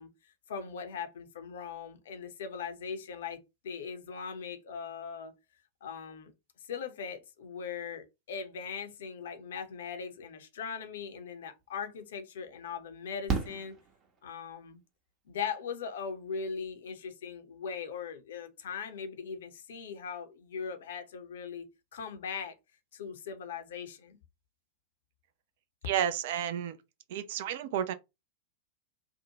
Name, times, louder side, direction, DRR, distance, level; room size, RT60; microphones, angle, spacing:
voice 1, 0.0-5.3 5.8-6.3 6.7-13.7 14.2-14.8 15.3-21.7 21.9-22.5 22.9-24.2, left 6 dB, 60° left, 0.5 m, -40 dB
Fireworks, 11.6-11.7 13.3-14.6 16.4-16.5 16.7-16.8, right 5 dB, 30° right, 0.8 m, -34 dB
voice 2, 25.9-26.8 27.1-27.9, right 10 dB, 55° right, 0.3 m, -31 dB
2.6 x 2.1 x 2.8 m
figure-of-eight pair, 90°, 0 cm